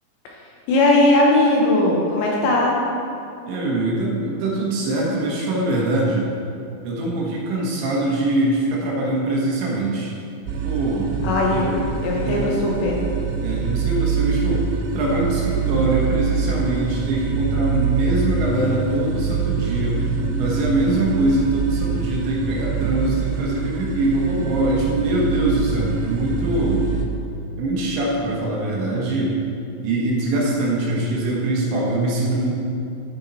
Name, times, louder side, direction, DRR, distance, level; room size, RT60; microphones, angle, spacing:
voice 1, 0.7-2.8 11.2-11.7 12.0-13.0, left 2 dB, 75° left, -3 dB, 2.9 m, -18 dB
voice 2, 3.5-6.3 6.8-10.1 10.6-11.1 11.5-12.6 13.4-20.1 20.4-26.9 27.6-29.4 29.8-32.5, right 2 dB, 70° right, -4 dB, 3.3 m, -23 dB
sound 1, 10.5-27.1, right 5 dB, 85° right, 3.3 m, -25 dB
11.0 x 8.3 x 4.1 m, 2.6 s
omnidirectional pair, 5.9 m